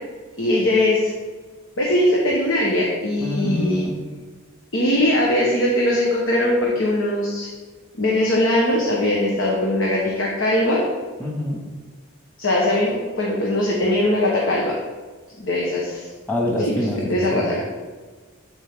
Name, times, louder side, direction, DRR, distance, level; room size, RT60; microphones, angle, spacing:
voice 1, 0.4-1.1 1.8-3.9 4.7-7.5 7.9-10.9 12.4-14.7 15.4-16.1 17.1-17.6, left 1 dB, 65° left, -3 dB, 1.3 m, -20 dB
voice 2, 3.2-4.0 11.2-11.7 16.3-17.5, left 1 dB, 10° left, -2 dB, 1.8 m, -25 dB
12.5 x 4.6 x 3.7 m, 1.4 s
head